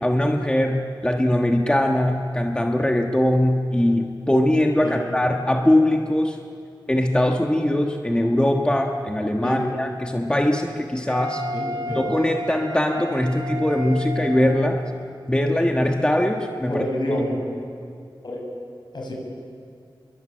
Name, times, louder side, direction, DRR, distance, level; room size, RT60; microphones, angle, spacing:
voice 1, 0.0-6.4 6.9-11.4 11.9-14.8 15.3-16.8, left 1 dB, 10° left, 2 dB, 1.4 m, -21 dB
Wind instrument woodwind instrument, 11.1-14.8, right 1 dB, 75° right, 2.4 m, -33 dB
voice 2, 11.5-12.0 16.7-17.4 18.2-18.4 18.9-19.1, left 1 dB, 60° left, 0 dB, 6.9 m, -27 dB
25.5 x 23.0 x 8.9 m, 2.4 s
wide cardioid pair, 100°, 9 cm